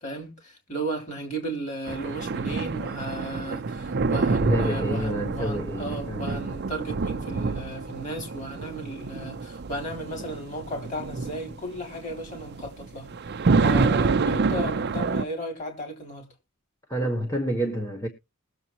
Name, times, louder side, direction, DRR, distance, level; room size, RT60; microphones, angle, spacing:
voice 1, 0.0-13.1 13.6-16.3, right 1 dB, 35° left, 3.3 m, -35 dB
sound 1, 1.9-15.2, right 4 dB, 50° right, 0.5 m, -27 dB
voice 2, 4.4-6.4 16.9-18.1, equal, 15° left, 1.1 m, -28 dB
20.0 x 7.2 x 2.9 m
head